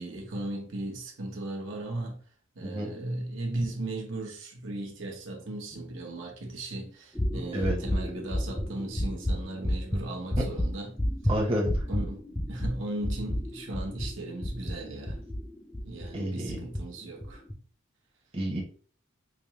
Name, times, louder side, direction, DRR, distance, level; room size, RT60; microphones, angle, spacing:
voice 1, 0.0-2.2 2.6-11.0 11.9-12.2 12.5-15.2 15.8-17.4, right 2 dB, 70° right, 0.9 m, -37 dB
voice 2, 2.6-2.9 7.5-7.8 11.3-11.8 16.1-16.6 18.3-18.6, equal, 30° right, 0.8 m, -29 dB
sound 1, 7.1-16.1 16.5-16.8 17.2-17.5, equal, 5° left, 0.5 m, -31 dB
5.0 x 2.0 x 2.9 m
head